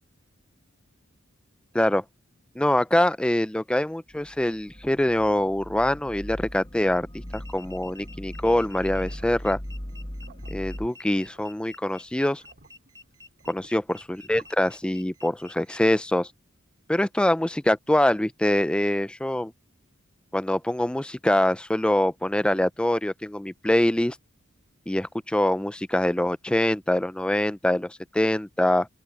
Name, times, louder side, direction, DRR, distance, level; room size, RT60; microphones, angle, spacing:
voice 1, 2.6-7.1 7.3-9.6 10.5-12.4 13.5-16.3 16.9-19.5 20.3-24.2 24.9-28.9, left 1 dB, 5° left, 0.4 m, -24 dB
sound 1, 4.1-10.9, equal, 25° left, 1.5 m, -39 dB
sound 2, 7.3-15.8, left 3 dB, 15° right, 2.1 m, -50 dB
sound 3, 9.0-14.5, right 3 dB, 50° right, 2.7 m, -56 dB
open air
head